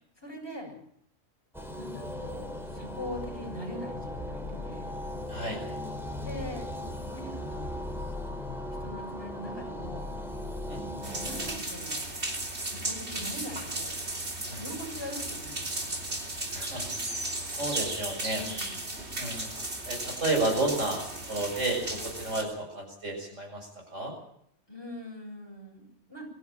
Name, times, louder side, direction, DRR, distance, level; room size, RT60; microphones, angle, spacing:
voice 1, 0.2-0.7 1.8-4.9 6.2-6.7 7.1-7.8 8.8-10.1 10.9-12.1 12.6-13.9 14.6-16.1 18.3-18.9 24.7-26.3, left 1 dB, 20° left, -1 dB, 7.9 m, -42 dB
sound 1, 1.5-11.6, left 1 dB, ahead, 3.2 m, -37 dB
voice 2, 5.3-5.6 10.7-10.8 14.5-14.6 16.5-17.2 17.5-18.4 19.2-19.5 19.9-24.1, right 2 dB, 85° right, 1 dB, 7.3 m, -32 dB
sound 2, 11.0-22.4, right 2 dB, 60° right, 3.6 m, -35 dB
23.0 x 14.0 x 9.0 m, 0.68 s
omnidirectional pair, 1.2 m